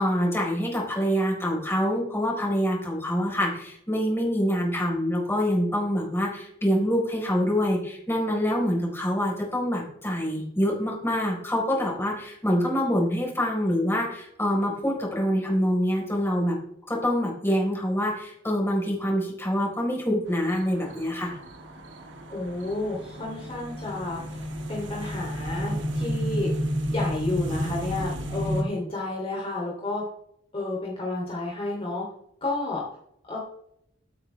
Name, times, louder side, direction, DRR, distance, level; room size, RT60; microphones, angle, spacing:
voice 1, 0.0-16.6 16.9-21.4, equal, 15° left, -2 dB, 4.4 m, -25 dB
sound 1, 20.3-28.6, equal, 80° right, 2.0 m, -31 dB
voice 2, 22.3-24.4 24.7-26.5 26.8-30.0 30.5-32.0 32.4-32.9 33.2-33.4, left 2 dB, 30° left, -4 dB, 3.1 m, -31 dB
16.0 x 9.2 x 3.4 m, 0.73 s
head